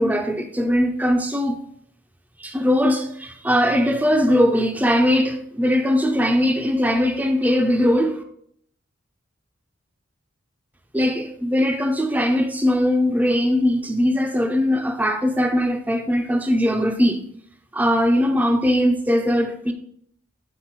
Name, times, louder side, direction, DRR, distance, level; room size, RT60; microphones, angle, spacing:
voice 1, 0.0-1.6 2.4-8.2 10.9-17.2 17.7-19.7, equal, 10° right, 0.4 m, -20 dB
8.2 x 3.9 x 4.4 m
head